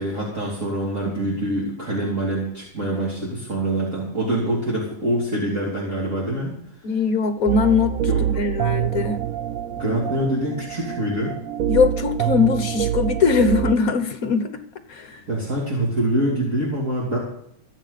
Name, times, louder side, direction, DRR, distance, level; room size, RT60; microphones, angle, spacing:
voice 1, 0.0-6.6 8.1-8.2 9.7-11.3 15.3-17.2, right 1 dB, 40° right, -5 dB, 3.5 m, -25 dB
voice 2, 6.8-7.9 8.3-9.2 11.7-14.6 14.9-15.2, left 5 dB, 50° left, 9 dB, 1.3 m, -21 dB
sound 1, 7.5-13.8, right 11 dB, 80° right, 0.7 m, -26 dB
25.5 x 8.5 x 4.1 m, 0.69 s
omnidirectional pair, 2.2 m